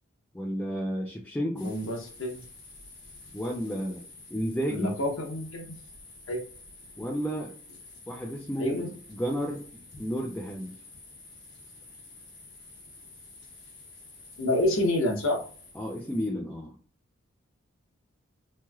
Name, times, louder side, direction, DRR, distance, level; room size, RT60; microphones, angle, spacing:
voice 1, 0.3-1.7 3.3-4.0 4.3-4.9 7.0-7.5 8.1-9.6 10.0-10.8 15.8-16.8, equal, 10° left, 0 dB, 0.3 m, -32 dB
voice 2, 1.6-2.4 4.7-5.7 6.3-6.4 8.6-8.9 14.4-15.4, left 1 dB, 80° left, 1 dB, 0.8 m, -28 dB
sound 1, 1.6-16.3, left 3 dB, 60° left, 1.1 m, -50 dB
3.0 x 2.9 x 2.2 m, 0.43 s
head